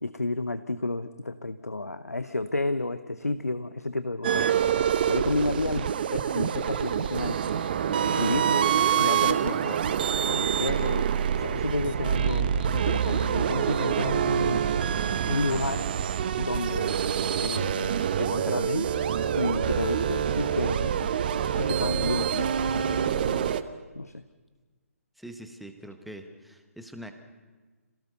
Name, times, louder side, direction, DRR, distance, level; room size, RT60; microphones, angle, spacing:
voice 1, 0.0-4.7 5.1-7.4 8.0-8.7 9.0-9.8 10.3-11.1 11.4-14.9 15.2-15.9 16.4-17.0 17.4-18.9 19.3-21.1 21.6-23.5 23.9-24.2, left 2 dB, 80° left, 12 dB, 0.8 m, -31 dB
sound 1, 4.2-23.6, right 8 dB, 35° right, 0.9 m, -26 dB
voice 2, 25.2-27.1, right 1 dB, ahead, 6 dB, 1.2 m, -43 dB
27.0 x 17.0 x 6.8 m, 1.4 s
figure-of-eight pair, 135°, 8 cm